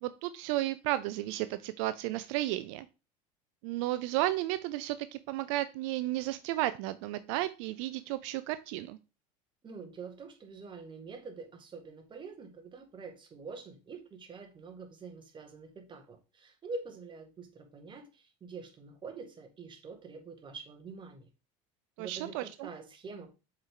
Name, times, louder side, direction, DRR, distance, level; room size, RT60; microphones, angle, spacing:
voice 1, 0.0-2.9 3.6-9.0 22.0-22.7, right 16 dB, 75° right, 13 dB, 0.5 m, -33 dB
voice 2, 9.6-21.3 22.0-23.3, right 4 dB, 30° right, 4 dB, 1.9 m, -46 dB
7.2 x 4.7 x 3.8 m, 0.29 s
supercardioid pair, 110°, 16 cm